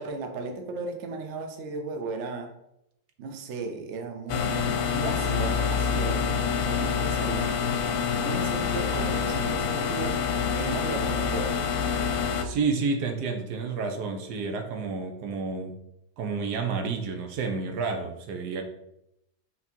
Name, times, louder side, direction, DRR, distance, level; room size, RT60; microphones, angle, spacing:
voice 1, 0.0-2.5 3.2-7.5 8.2-10.2 10.5-11.6, right 3 dB, 50° right, 4 dB, 1.0 m, -35 dB
sound 1, 4.3-12.4, left 6 dB, 65° left, 1.0 m, -27 dB
voice 2, 12.4-15.8 16.2-18.6, right 4 dB, 80° right, 5 dB, 1.4 m, -30 dB
6.2 x 3.8 x 4.4 m, 0.81 s
omnidirectional pair, 1.7 m